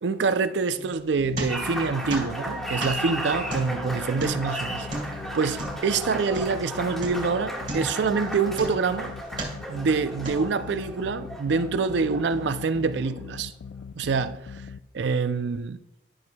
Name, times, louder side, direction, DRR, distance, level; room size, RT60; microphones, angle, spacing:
voice 1, 0.0-4.9 5.3-9.1 9.7-13.5 14.0-14.6 14.9-15.8, right 4 dB, 65° right, 0.4 m, -26 dB
sound 1, 0.7-6.7 7.0-7.4 7.7-9.0 9.3-9.8 10.2-10.8, right 2 dB, 40° right, 2.0 m, -35 dB
sound 2, 1.2-14.8, left 5 dB, 75° left, 0.3 m, -41 dB
Applause, 1.5-13.2, right 1 dB, ahead, 1.1 m, -35 dB
11.0 x 6.2 x 2.2 m
head